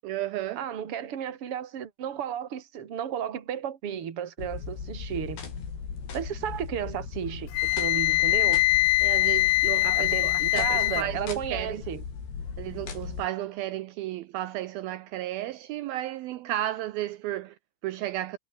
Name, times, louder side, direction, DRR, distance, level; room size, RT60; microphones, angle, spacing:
voice 1, 0.0-0.7 9.0-11.8 12.6-18.4, right 14 dB, 85° right, 2.1 m, -33 dB
voice 2, 0.6-5.4 6.1-8.7 9.9-12.0, right 9 dB, 40° right, 2.3 m, -33 dB
sound 1, 4.4-13.3, left 6 dB, 60° left, 7.3 m, -38 dB
Wind instrument woodwind instrument, 7.5-11.0, left 22 dB, 85° left, 2.7 m, -23 dB
omnidirectional pair, 5.4 m